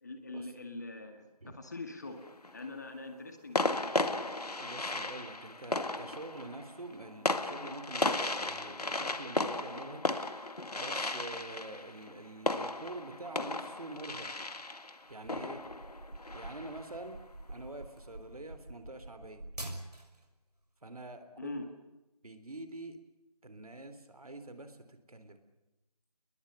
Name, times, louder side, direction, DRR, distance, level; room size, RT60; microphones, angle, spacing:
voice 1, 0.0-2.2 2.5-4.0 21.4-21.6, left 3 dB, 25° left, 6 dB, 2.1 m, -43 dB
sound 1, 2.0-2.6 3.5-17.0, left 2 dB, 80° left, 2.0 m, -35 dB
voice 2, 4.6-10.0 10.3-10.5 10.7-14.3 15.1-15.6 16.3-17.2 17.5-19.4 20.8-21.6 22.2-23.0 23.4-25.4, right 2 dB, 70° right, 9 dB, 3.6 m, -46 dB
sound 2, 15.1-20.2, right 1 dB, 85° right, 6.4 m, -46 dB
29.0 x 21.0 x 6.9 m, 0.99 s
figure-of-eight pair, 175°, 20 cm